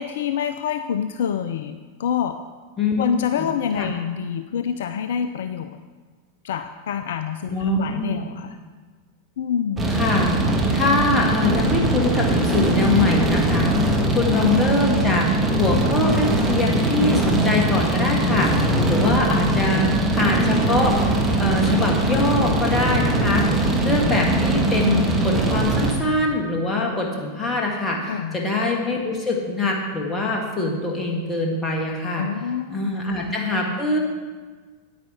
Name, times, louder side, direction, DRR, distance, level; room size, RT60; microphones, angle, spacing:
voice 1, 0.0-2.4 3.0-5.8 6.4-8.6 9.4-9.9 28.1-28.4 32.2-32.9, left 8 dB, 60° left, 9 dB, 0.3 m, -27 dB
voice 2, 2.8-3.1 3.4-3.5 3.8-3.9 7.5-8.2 9.9-10.4 10.7-15.3 15.6-20.9 21.4-23.5 23.8-32.3 32.7-34.0, left 2 dB, 15° left, -1 dB, 1.9 m, -23 dB
sound 1, 9.8-25.9, right 1 dB, 15° right, 1.5 m, -21 dB
9.4 x 8.9 x 4.4 m, 1.4 s
figure-of-eight pair, 90°, 0 cm